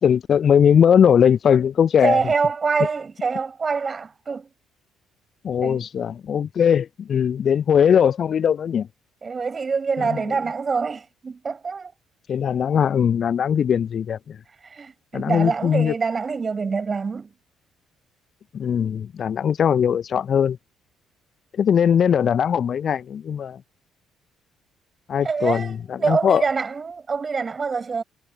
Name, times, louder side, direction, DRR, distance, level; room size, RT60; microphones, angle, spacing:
voice 1, 0.0-2.2 5.4-8.9 12.3-14.4 15.1-15.9 18.5-20.6 21.6-23.6 25.1-26.4, left 8 dB, 45° left, 0.6 m, -20 dB
voice 2, 2.0-4.5 5.6-5.8 9.2-11.9 14.6-17.3 25.2-28.0, right 5 dB, 35° right, 4.8 m, -25 dB
figure-of-eight pair, 45°, 0 cm